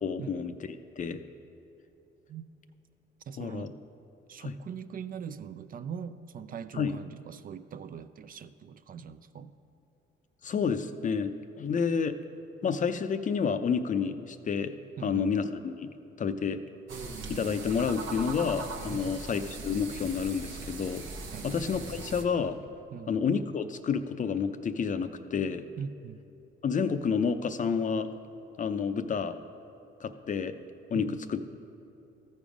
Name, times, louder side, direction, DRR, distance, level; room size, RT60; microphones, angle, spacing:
voice 1, 0.0-1.2 3.4-3.7 4.4-4.5 6.7-7.0 10.4-12.2 12.6-14.7 15.0-15.9 16.2-16.6 17.3-21.0 21.4-22.6 23.1-25.6 26.6-28.1 28.6-29.4 30.0-30.6 30.9-31.5, left 6 dB, 40° left, 10 dB, 0.5 m, -30 dB
voice 2, 3.3-3.8 4.3-9.5 15.0-15.3 18.9-19.2 21.3-21.5 22.9-23.2 25.8-26.2 30.9-31.2, right 7 dB, 45° right, 12 dB, 0.4 m, -41 dB
sound 1, 16.9-22.2, right 3 dB, 80° right, 1.0 m, -40 dB
14.0 x 5.3 x 5.0 m, 2.8 s
cardioid pair, 90°, 20 cm